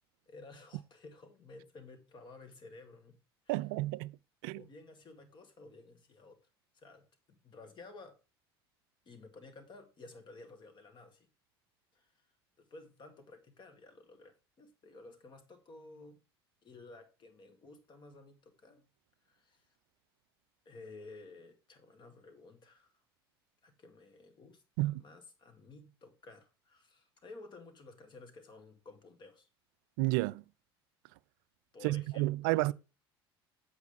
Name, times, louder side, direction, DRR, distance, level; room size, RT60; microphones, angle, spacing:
voice 1, 0.3-3.2 3.5-3.7 4.6-6.4 6.7-8.2 9.1-11.3 11.9-12.3 12.6-16.2 16.6-18.9 19.2-19.8 20.7-23.0 23.6-29.5 31.7-32.7, left 3 dB, 35° left, 2.0 m, -54 dB
voice 2, 3.5-4.1 4.4-4.6 24.8-24.9 30.0-30.4 31.8-32.7, right 19 dB, 60° right, 0.4 m, -31 dB
8.2 x 4.9 x 5.2 m
figure-of-eight pair, 70°, 13 cm